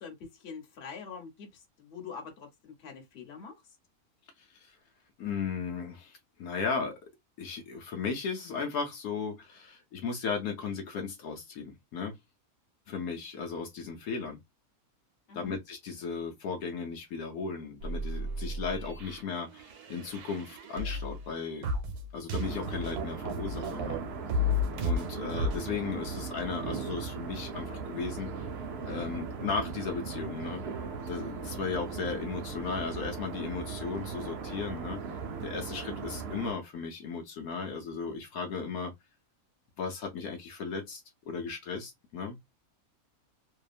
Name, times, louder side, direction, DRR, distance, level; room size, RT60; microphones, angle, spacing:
voice 1, 0.0-3.8 15.3-15.6, left 6 dB, 50° left, 1.0 m, -45 dB
voice 2, 4.4-4.8 5.2-7.0 7.4-12.2 12.9-14.4 15.3-21.7 22.1-24.0 24.8-28.5 28.8-38.9 39.8-42.4, left 5 dB, 75° left, 1.1 m, -36 dB
sound 1, 17.8-21.3 21.6-24.0 24.3-25.6, left 1 dB, 90° right, 1.2 m, -33 dB
sound 2, 22.4-36.5, right 5 dB, 60° right, 0.7 m, -38 dB
2.7 x 2.3 x 2.3 m
omnidirectional pair, 1.6 m